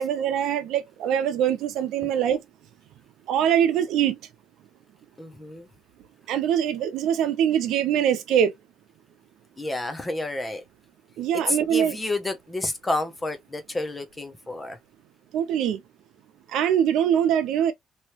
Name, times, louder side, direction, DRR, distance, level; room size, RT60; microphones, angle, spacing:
voice 1, 0.0-2.4 3.3-4.2 6.3-8.5 11.2-12.0 15.3-15.8 16.5-17.7, right 9 dB, 75° right, 0.7 m, -23 dB
voice 2, 5.2-5.7 9.6-10.6 11.3-14.8, left 2 dB, 10° left, 0.6 m, -30 dB
3.0 x 2.9 x 2.9 m
cardioid pair, 175°, 0 cm